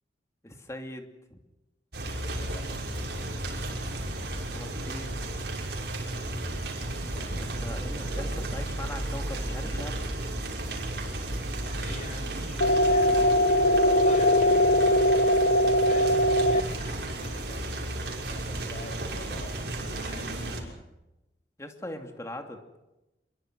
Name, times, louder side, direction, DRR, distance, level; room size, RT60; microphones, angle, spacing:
voice 1, 0.4-1.4 4.5-5.2 7.4-10.0 21.6-22.6, left 1 dB, 15° left, 4 dB, 2.7 m, -41 dB
sound 1, 1.9-20.6, right 1 dB, 65° right, 6.3 m, -33 dB
voice 2, 2.2-3.4 7.1-8.9 11.6-13.3 13.6-20.3, left 1 dB, 45° left, 4 dB, 7.1 m, -46 dB
sound 2, 12.6-16.6, equal, 70° left, 1.0 m, -21 dB
27.5 x 22.5 x 6.2 m, 0.97 s
head